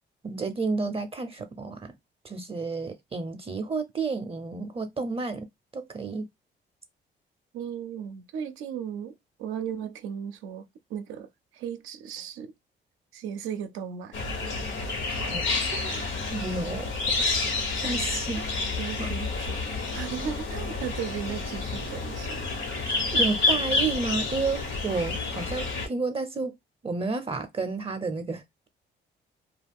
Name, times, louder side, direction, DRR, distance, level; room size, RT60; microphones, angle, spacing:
voice 1, 0.2-1.9 2.2-5.5 5.7-6.3 15.1-16.0 16.3-17.3 17.8-18.5 19.0-19.1 23.1-26.5 26.8-28.7, right 4 dB, 30° right, 0.5 m, -31 dB
voice 2, 7.5-12.5 13.1-14.2 18.4-18.5 18.8-22.5, right 8 dB, 90° right, 0.5 m, -36 dB
sound 1, 14.1-25.9, left 3 dB, 75° left, 1.1 m, -29 dB
2.3 x 2.3 x 3.5 m
cardioid pair, 90°, 20 cm